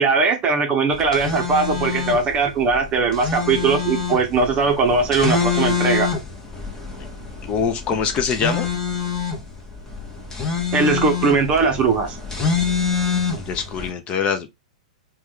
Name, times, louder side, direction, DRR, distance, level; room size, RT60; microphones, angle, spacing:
voice 1, 0.0-6.1 10.7-12.2, right 4 dB, 30° right, 0.7 m, -19 dB
sound 1, 0.9-13.9, left 6 dB, 15° left, 0.9 m, -26 dB
voice 2, 7.4-8.7 13.5-14.5, left 6 dB, 30° left, 0.4 m, -23 dB
2.9 x 2.2 x 3.5 m
hypercardioid pair, 115°, 4 cm